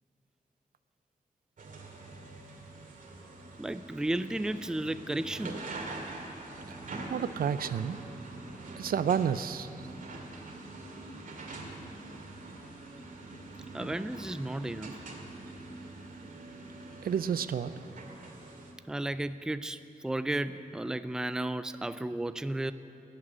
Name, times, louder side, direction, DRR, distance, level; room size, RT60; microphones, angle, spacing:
sound 1, 1.6-18.7, right 2 dB, 65° right, 2.1 m, -44 dB
voice 1, 3.6-5.6 13.7-15.0 18.9-22.7, right 1 dB, 5° right, 12 dB, 0.4 m, -33 dB
voice 2, 7.1-8.0 8.8-9.7 17.0-17.7, right 8 dB, 85° right, 13 dB, 0.5 m, -30 dB
17.5 x 7.7 x 9.7 m, 2.6 s
wide cardioid pair, 135°, 15 cm